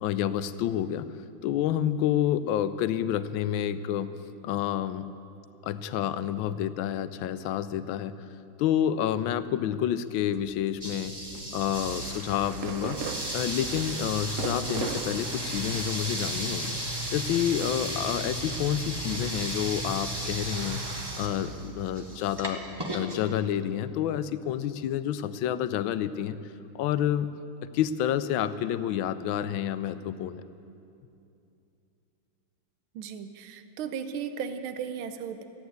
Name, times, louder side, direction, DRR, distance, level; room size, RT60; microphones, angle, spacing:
voice 1, 0.0-1.1 1.4-4.1 4.4-5.1 5.6-8.2 8.6-11.2 11.5-13.0 13.3-16.8 17.1-20.8 21.2-22.6 22.9-26.4 26.7-27.3 27.7-30.4, left 10 dB, 75° left, 14 dB, 1.3 m, -29 dB
sound 1, 10.3-15.8, right 3 dB, 45° right, 1.4 m, -51 dB
sound 2, 10.8-23.2, right 1 dB, 15° right, 1.0 m, -34 dB
sound 3, 11.9-23.4, right 6 dB, 70° right, 0.7 m, -41 dB
voice 2, 32.9-35.4, right 7 dB, 85° right, 10 dB, 1.6 m, -36 dB
14.0 x 9.0 x 9.4 m, 2.7 s
omnidirectional pair, 2.2 m